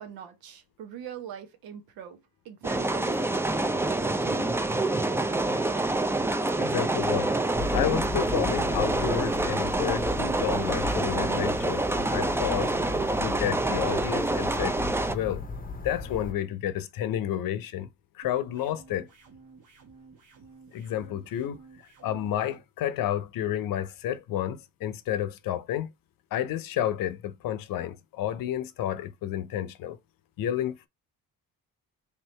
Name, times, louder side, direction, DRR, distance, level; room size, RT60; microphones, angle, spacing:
voice 1, 0.0-2.2 2.4-3.1 3.8-4.6, right 8 dB, 85° right, 1.0 m, -42 dB
sound 1, 2.6-15.1, right 2 dB, 5° right, 0.4 m, -27 dB
voice 2, 6.6-7.3 7.7-11.8 12.1-12.7 13.2-14.8 15.1-15.4 15.8-17.9 18.1-19.1 20.7-21.6 22.0-25.9 26.3-30.0 30.4-30.9, left 11 dB, 75° left, 0.6 m, -30 dB
sound 2, 7.5-16.3, left 3 dB, 25° left, 0.7 m, -36 dB
sound 3, 18.2-22.6, right 4 dB, 60° right, 1.3 m, -53 dB
3.5 x 2.8 x 3.2 m
cardioid pair, 75°, 35 cm